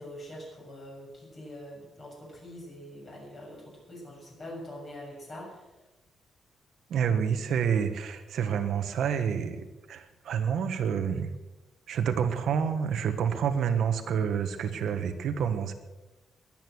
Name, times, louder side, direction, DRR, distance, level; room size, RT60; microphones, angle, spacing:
voice 1, 0.0-5.7, equal, 35° left, -2 dB, 7.0 m, -44 dB
voice 2, 6.9-11.3 11.9-15.7, right 7 dB, 65° right, 8 dB, 1.4 m, -28 dB
21.5 x 9.1 x 6.4 m, 1.1 s
cardioid pair, 170°, 0 cm